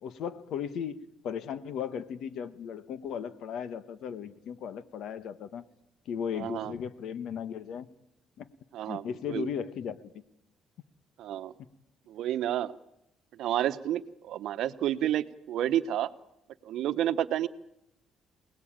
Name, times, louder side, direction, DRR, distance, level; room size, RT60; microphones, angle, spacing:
voice 1, 0.0-5.7 6.1-7.9 8.4-8.5 8.9-10.1, left 7 dB, 75° left, 1.3 m, -36 dB
voice 2, 6.4-6.7 8.7-9.5 11.2-11.5 12.1-12.7 13.4-16.1 16.6-17.5, right 11 dB, 75° right, 1.0 m, -30 dB
27.0 x 18.5 x 8.8 m
cardioid pair, 115°, 0 cm